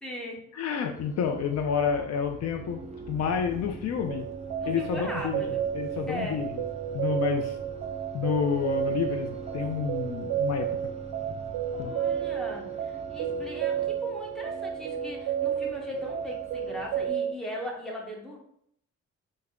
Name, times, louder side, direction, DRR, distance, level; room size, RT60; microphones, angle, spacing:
voice 1, 0.0-0.4 4.6-5.6 6.1-6.4 11.7-18.4, left 1 dB, ahead, -2 dB, 0.9 m, -38 dB
voice 2, 0.5-2.8 3.1-4.3 4.7-5.4 5.7-6.6 6.9-7.6 8.1-10.7 11.8-11.9, left 7 dB, 60° left, 5 dB, 0.5 m, -29 dB
sound 1, 0.9-17.1, right 3 dB, 20° right, 0.5 m, -45 dB
sound 2, 3.2-11.9, right 3 dB, 30° left, 1.2 m, -47 dB
sound 3, 4.1-17.3, right 9 dB, 75° right, 0.5 m, -32 dB
3.4 x 2.1 x 3.6 m, 0.70 s
cardioid pair, 90°, 30 cm